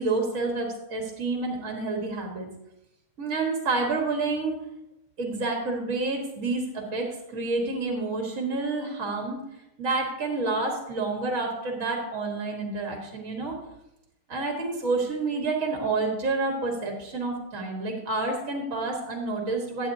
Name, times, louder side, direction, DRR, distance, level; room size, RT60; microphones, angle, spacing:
voice 1, 0.0-2.5 3.2-4.6 5.2-9.4 9.8-13.5 14.3-19.9, right 3 dB, 65° right, 1 dB, 1.8 m, -29 dB
12.0 x 8.4 x 2.7 m, 0.88 s
omnidirectional pair, 1.5 m